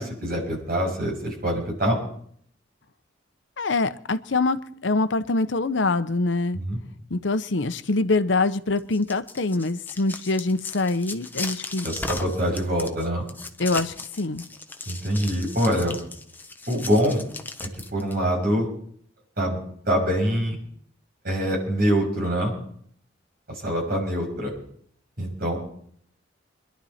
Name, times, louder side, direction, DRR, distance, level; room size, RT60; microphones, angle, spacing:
voice 1, 0.0-2.0 6.5-6.8 11.8-13.2 14.9-16.0 16.7-17.2 17.9-18.7 19.4-19.6 19.8-20.6 21.2-22.5 23.5-24.5 25.2-25.6, equal, 50° right, -1 dB, 6.7 m, -24 dB
voice 2, 3.6-6.6 7.1-11.9 13.6-14.5, left 3 dB, 70° left, 11 dB, 0.9 m, -24 dB
sound 1, 8.8-18.1, left 3 dB, 10° left, 1.0 m, -36 dB
25.5 x 11.5 x 4.3 m, 0.62 s
head